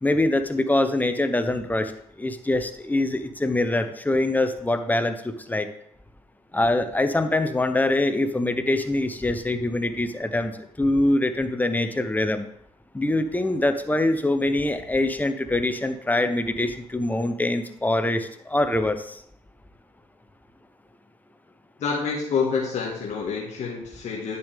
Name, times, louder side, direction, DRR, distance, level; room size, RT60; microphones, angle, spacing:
voice 1, 0.0-1.9 2.2-5.7 6.5-12.5 12.9-19.2, left 2 dB, 15° left, 9 dB, 0.9 m, -24 dB
voice 2, 21.8-24.4, left 5 dB, 70° left, -3 dB, 1.8 m, -27 dB
10.0 x 6.8 x 3.5 m, 0.68 s
cardioid pair, 80°, 12 cm